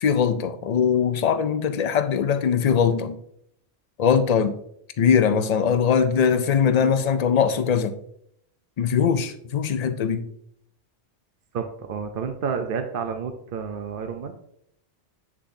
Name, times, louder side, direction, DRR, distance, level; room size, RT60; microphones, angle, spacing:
voice 1, 0.0-3.2 4.0-4.5 5.0-7.9 8.8-10.3, left 7 dB, 65° left, 0.4 m, -21 dB
voice 2, 11.5-14.3, right 6 dB, 55° right, 0.7 m, -30 dB
7.7 x 6.8 x 2.6 m
omnidirectional pair, 1.2 m